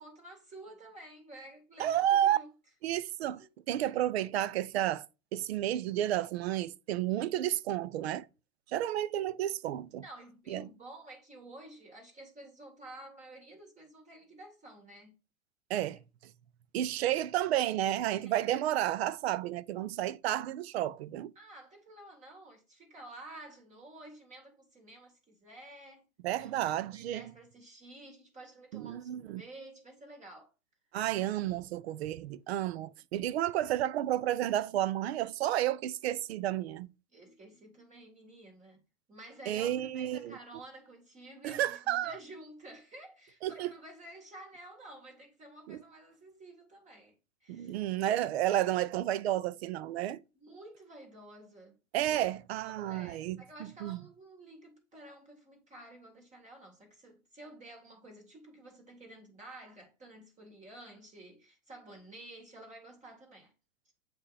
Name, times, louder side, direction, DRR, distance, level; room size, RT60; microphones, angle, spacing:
voice 1, 0.0-2.5 3.3-3.5 10.0-15.1 17.1-17.2 18.2-18.5 21.4-26.0 26.4-30.5 37.1-38.8 39.1-47.2 47.4-47.8 50.3-52.2 52.6-63.5, right 1 dB, 15° right, 2.1 m, -51 dB
voice 2, 1.8-2.4 2.8-5.1 5.3-8.3 8.7-10.0 10.5-10.7 15.7-16.0 16.7-21.3 26.2-27.3 28.7-29.4 30.9-36.9 39.5-40.4 41.4-42.2 43.4-43.7 45.7-45.8 47.5-50.2 51.9-54.0, right 12 dB, 45° right, 0.5 m, -31 dB
7.6 x 2.9 x 4.8 m
hypercardioid pair, 120°, 44 cm